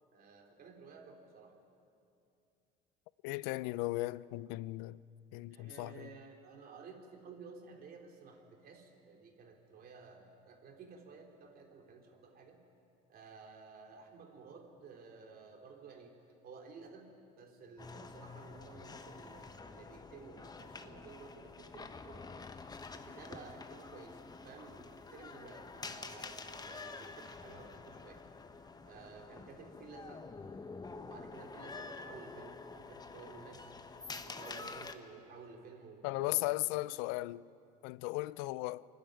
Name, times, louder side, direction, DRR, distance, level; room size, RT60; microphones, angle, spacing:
voice 1, 0.1-1.6 5.5-12.6 13.1-16.2 16.4-22.5 22.9-28.2 28.9-30.3 30.9-33.7 34.2-36.6 36.8-37.0, right 5 dB, 50° right, 3.4 m, -54 dB
voice 2, 3.2-5.0 5.3-6.1 36.0-37.4 37.8-38.8, left 20 dB, 75° left, 0.5 m, -36 dB
sound 1, 17.8-34.9, left 4 dB, 20° left, 1.1 m, -48 dB
23.0 x 12.0 x 9.4 m
supercardioid pair, 85°, 20 cm